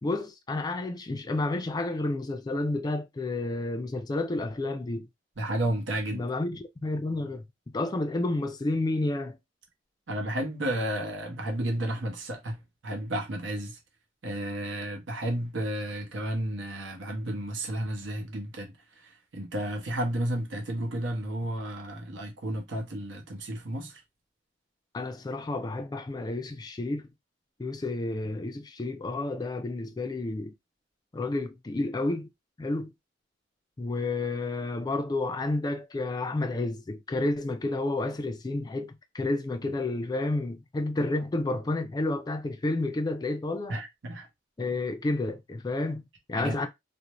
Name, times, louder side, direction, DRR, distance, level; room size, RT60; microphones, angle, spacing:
voice 1, 0.0-5.1 6.1-7.5 7.7-9.4 24.9-27.1 27.6-30.5 31.1-32.3 32.6-32.9 33.8-43.8 44.6-46.7, left 2 dB, 20° left, 0.3 m, -30 dB
voice 2, 5.4-6.3 10.1-13.8 14.2-18.7 19.0-24.0 43.7-44.3 46.3-46.7, right 1 dB, 80° right, 0.8 m, -32 dB
2.5 x 2.1 x 2.9 m
head